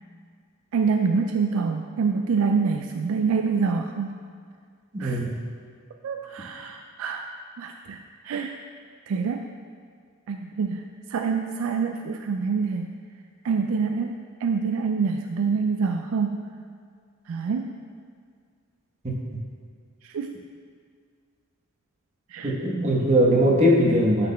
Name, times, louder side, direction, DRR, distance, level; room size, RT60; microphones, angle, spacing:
voice 1, 0.7-4.2 5.0-5.2 6.0-7.3 7.6-8.0 8.2-8.6 9.1-9.5 10.3-10.8 11.1-12.9 13.4-14.1 14.4-16.5 17.3-17.7 20.0-20.3 22.3-22.5, right 5 dB, 70° right, 4 dB, 0.3 m, -26 dB
voice 2, 4.9-5.3 19.0-19.2 22.4-24.3, equal, 30° right, -3 dB, 1.0 m, -20 dB
9.7 x 5.7 x 2.2 m, 2.1 s
head